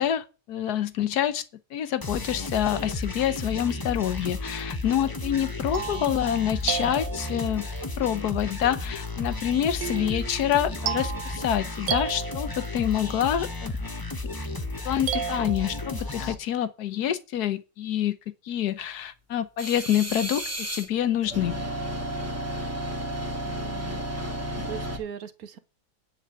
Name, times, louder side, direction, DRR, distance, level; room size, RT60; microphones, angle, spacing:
voice 1, 0.0-1.4 1.7-7.7 8.0-13.7 14.8-18.2 18.4-20.4 20.7-21.6, left 10 dB, 70° left, 1.4 m, -27 dB
sound 1, 2.0-16.3, left 2 dB, 15° left, 0.8 m, -33 dB
sound 2, 5.2-7.7 9.8-13.0 15.1-16.3, right 9 dB, 85° right, 1.4 m, -34 dB
sound 3, 19.6-20.9 21.2-25.0, equal, 10° right, 2.5 m, -32 dB
voice 2, 23.4-25.6, right 8 dB, 60° right, 1.5 m, -41 dB
10.0 x 4.8 x 7.7 m
omnidirectional pair, 1.8 m